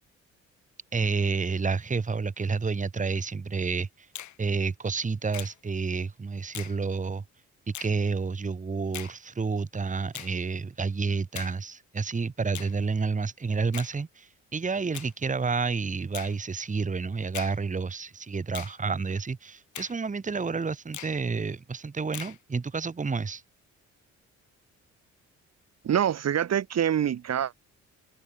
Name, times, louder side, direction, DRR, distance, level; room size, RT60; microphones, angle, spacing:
voice 1, 0.9-4.1 4.4-7.2 7.8-23.4, right 4 dB, 25° right, 1.9 m, -30 dB
Finger snapping, 4.1-4.4 5.3-5.6 6.5-6.8 7.7-7.9 8.9-9.2 10.1-10.4 11.3-11.6 12.5-12.7 13.7-13.9 14.9-15.1 16.1-16.4 17.3-17.6 18.5-18.8 19.7-20.0 20.9-21.2 22.1-22.4, left 12 dB, 70° left, 2.5 m, -40 dB
voice 2, 25.8-27.5, right 9 dB, 60° right, 2.8 m, -25 dB
cardioid pair, 90°, 30 cm